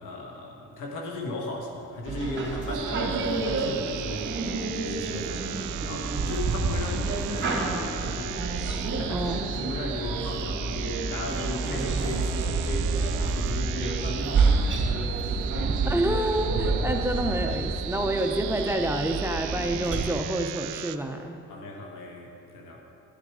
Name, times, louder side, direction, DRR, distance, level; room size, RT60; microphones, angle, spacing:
voice 1, 0.0-4.3 4.6-7.6 8.0-8.5 8.9-15.8 21.5-22.8, left 2 dB, 90° left, 0 dB, 1.6 m, -36 dB
sound 1, 2.1-20.1, right 3 dB, 40° right, 2.0 m, -29 dB
sound 2, 2.7-21.0, right 14 dB, 90° right, 0.5 m, -38 dB
voice 2, 15.9-21.4, right 1 dB, 10° right, 3 dB, 0.7 m, -28 dB
12.0 x 8.9 x 4.8 m, 2.5 s
cardioid pair, 90°, 30 cm